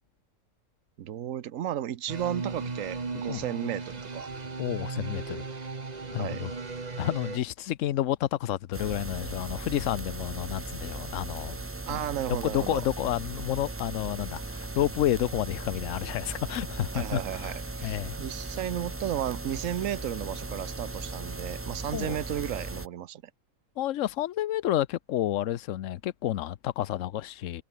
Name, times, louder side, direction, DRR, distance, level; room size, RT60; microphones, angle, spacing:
voice 1, 1.0-4.3 6.2-6.4 11.9-12.8 16.9-23.2, right 11 dB, 75° right, 1.2 m, -34 dB
sound 1, 2.1-7.4, right 4 dB, 30° right, 1.5 m, -36 dB
voice 2, 4.6-5.4 6.1-6.5 7.0-11.6 11.9-12.0 12.3-17.5 17.8-18.2 21.9-22.2 23.8-27.6, left 13 dB, 70° left, 1.0 m, -30 dB
sound 2, 8.7-22.9, right 2 dB, 15° right, 0.5 m, -38 dB
omnidirectional pair, 1.4 m